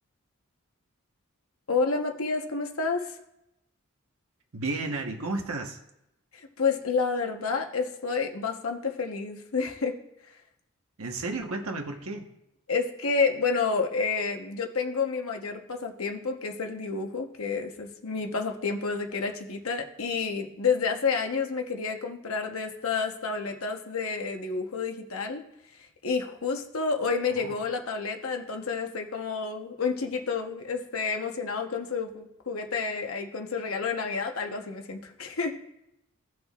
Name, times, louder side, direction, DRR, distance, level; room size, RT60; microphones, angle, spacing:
voice 1, 1.7-3.2 6.3-10.0 12.7-25.4 25.8-35.6, left 4 dB, 75° left, 3 dB, 1.1 m, -29 dB
voice 2, 4.5-5.8 11.0-12.3 27.4-27.5, right 3 dB, 80° right, 3 dB, 1.2 m, -33 dB
16.5 x 6.1 x 2.4 m, 0.86 s
head